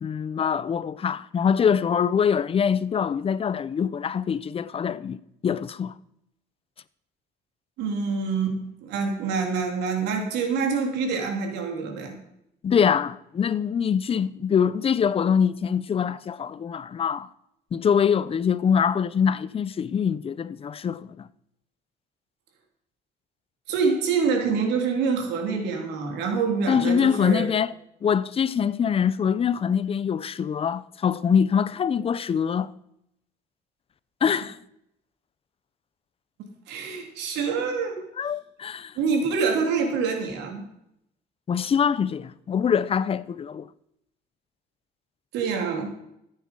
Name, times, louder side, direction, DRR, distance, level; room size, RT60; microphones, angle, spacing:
voice 1, 0.0-5.9 12.6-17.3 17.7-21.3 26.7-27.7 28.0-32.7 34.2-34.6 38.2-38.9 41.5-43.7, left 7 dB, 35° left, 0.6 m, -24 dB
voice 2, 7.8-12.2 23.7-27.5 36.7-38.0 38.9-40.6 45.3-45.9, right 5 dB, 85° right, 3.2 m, -26 dB
14.5 x 9.0 x 5.4 m
cardioid pair, 110°, 17 cm